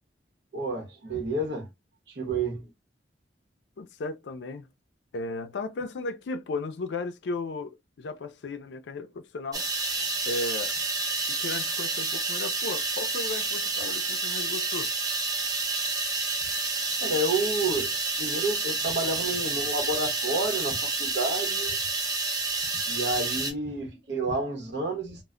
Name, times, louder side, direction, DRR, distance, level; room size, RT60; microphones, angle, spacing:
voice 1, 0.5-1.7 2.1-2.7 17.0-21.7 22.9-25.2, right 2 dB, 80° right, 0.8 m, -30 dB
voice 2, 3.8-4.7 5.1-9.7 10.3-10.7 11.4-14.9, left 3 dB, 80° left, 0.4 m, -35 dB
sound 1, 9.5-23.5, right 3 dB, 20° right, 0.6 m, -29 dB
2.1 x 2.1 x 3.6 m
head